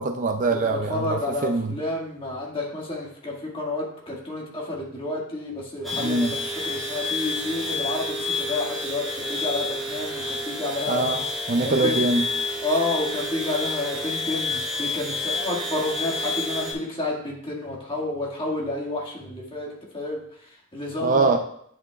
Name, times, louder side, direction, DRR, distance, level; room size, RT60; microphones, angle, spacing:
voice 1, 0.0-1.8 5.9-6.3 10.9-12.2 21.0-21.4, right 3 dB, 35° right, 5 dB, 0.5 m, -23 dB
voice 2, 0.9-11.2 11.6-12.1 12.6-19.7 19.9-20.2 20.7-21.3, left 2 dB, 25° left, -3 dB, 1.9 m, -30 dB
sound 1, 5.8-16.7, left 2 dB, ahead, 2.7 m, -29 dB
10.5 x 7.0 x 2.3 m, 0.67 s
head